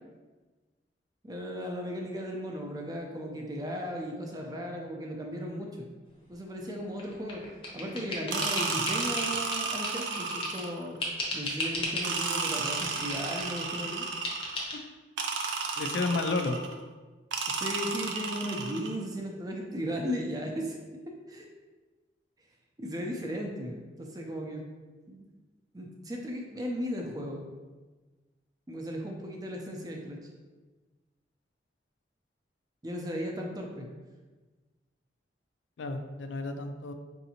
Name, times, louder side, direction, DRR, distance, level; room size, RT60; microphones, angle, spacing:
voice 1, 1.2-5.9 6.3-7.4 7.7-11.0 11.3-14.1 17.5-20.8 21.3-21.5 22.8-24.7 25.1-25.3 25.7-27.4 28.7-30.2 32.8-33.9, equal, 20° right, 1 dB, 0.4 m, -36 dB
sound 1, 7.0-10.7 11.0-12.1 12.5-13.7 14.2-14.8, left 1 dB, 30° left, 0.6 m, -36 dB
sound 2, 8.3-10.9 12.0-14.6 15.2-16.7 17.3-18.9, right 4 dB, 85° right, 0.4 m, -33 dB
voice 2, 15.8-16.6 35.8-36.9, left 3 dB, 80° left, 6 dB, 0.4 m, -31 dB
4.8 x 2.6 x 2.8 m, 1.3 s
head